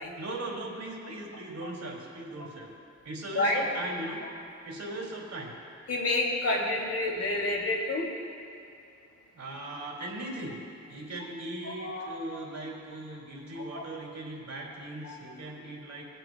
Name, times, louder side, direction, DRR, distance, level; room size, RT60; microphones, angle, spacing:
voice 1, 0.2-2.7 3.0-4.2 4.6-5.5 9.3-10.5 10.9-16.1, right 2 dB, 70° right, -3 dB, 2.8 m, -39 dB
voice 2, 5.9-8.1 11.6-12.1 13.5-13.8 15.0-15.2, left 2 dB, 55° left, -2 dB, 2.8 m, -29 dB
23.0 x 9.0 x 2.3 m, 2.6 s
cardioid pair, 60°, 29 cm